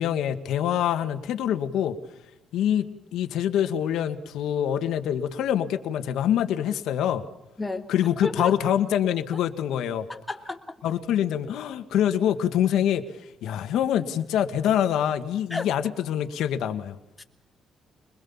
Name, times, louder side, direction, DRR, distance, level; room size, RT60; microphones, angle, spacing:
voice 1, 0.0-1.9 2.5-2.9 3.1-7.2 7.9-10.1 10.8-17.0, left 10 dB, 85° left, 8 dB, 1.6 m, -25 dB
voice 2, 8.2-8.5 10.1-10.7 15.5-15.7 17.2-17.3, left 3 dB, 15° left, 5 dB, 2.8 m, -32 dB
24.5 x 21.0 x 7.2 m, 0.93 s
cardioid pair, 90°, 0 cm